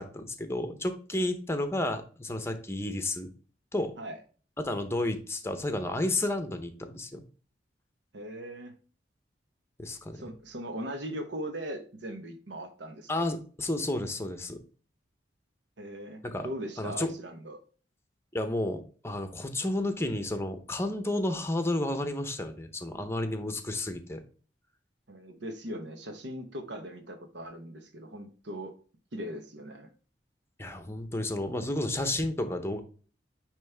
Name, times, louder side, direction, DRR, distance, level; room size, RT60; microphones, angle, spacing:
voice 1, 0.0-3.3 3.7-3.9 4.6-7.2 9.8-10.2 13.1-14.6 16.2-16.5 16.8-17.1 18.3-24.2 30.6-32.8, left 1 dB, 15° left, 8 dB, 0.8 m, -31 dB
voice 2, 8.1-8.7 10.1-13.4 15.8-17.6 25.1-28.7 29.1-29.9, right 1 dB, 75° right, 6 dB, 1.0 m, -39 dB
9.2 x 3.1 x 3.4 m, 0.40 s
head